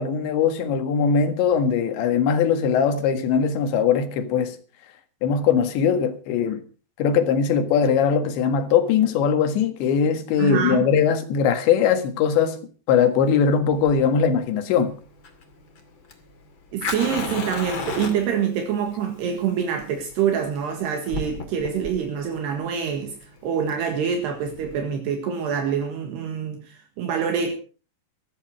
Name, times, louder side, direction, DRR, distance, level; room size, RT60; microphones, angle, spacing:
voice 1, 0.0-4.6 5.2-6.6 7.0-12.6 12.9-14.9, left 7 dB, 85° left, 4.0 m, -20 dB
voice 2, 10.4-10.8 16.7-27.5, right 7 dB, 75° right, 3.8 m, -26 dB
Fire, 13.7-24.8, left 4 dB, 35° left, 2.3 m, -35 dB
15.5 x 14.5 x 4.8 m
omnidirectional pair, 5.0 m